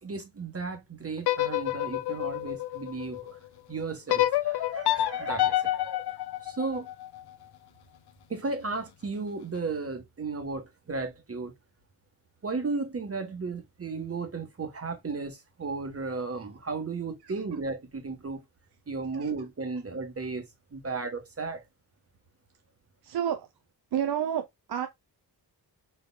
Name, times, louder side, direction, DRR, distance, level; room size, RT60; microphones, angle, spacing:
voice 1, 0.0-3.4 3.7-6.1 6.4-6.9 8.3-11.5 12.4-18.4 18.9-20.4 20.7-21.6, right 4 dB, 35° right, 1.3 m, -34 dB
sound 1, 1.2-3.4 4.1-7.2, left 14 dB, 65° left, 0.5 m, -28 dB
voice 2, 23.0-23.5 23.9-24.9, right 9 dB, 65° right, 0.6 m, -30 dB
4.7 x 4.3 x 2.2 m
wide cardioid pair, 120°, 41 cm